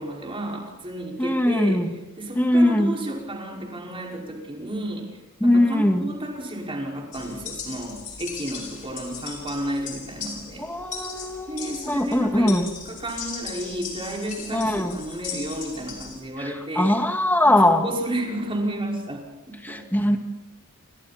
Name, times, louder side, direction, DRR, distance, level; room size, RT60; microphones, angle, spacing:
voice 1, 0.0-1.8 2.2-5.1 5.4-10.7 11.5-12.6 12.9-17.0 17.4-19.8, right 1 dB, 25° right, -1 dB, 5.5 m, -32 dB
voice 2, 1.2-1.9 2.3-3.0 5.4-6.1 10.6-12.7 14.5-15.0 16.4-17.9 19.6-20.2, left 1 dB, 10° left, 4 dB, 2.1 m, -21 dB
sound 1, 7.1-16.2, left 5 dB, 40° left, 6.1 m, -38 dB
29.5 x 25.5 x 4.4 m, 1.0 s
head